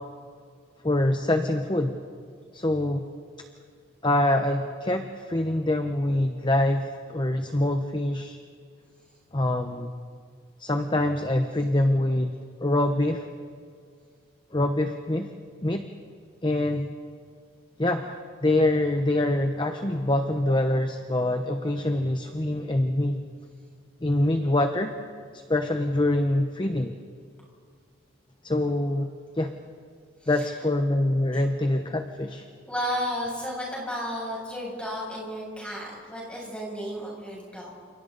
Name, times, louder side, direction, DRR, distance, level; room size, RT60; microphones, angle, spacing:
voice 1, 0.8-1.9 2.5-3.1 4.0-8.4 9.3-9.9 10.6-12.3 12.6-13.3 14.5-15.3 15.6-15.9 16.4-16.9 17.8-23.2 24.0-24.9 25.3-26.9 28.4-29.1 29.4-29.5 30.3-32.5, left 1 dB, 25° left, 6 dB, 0.9 m, -25 dB
voice 2, 32.7-37.7, equal, 5° left, -4 dB, 7.5 m, -33 dB
29.5 x 28.5 x 4.1 m, 2.2 s
head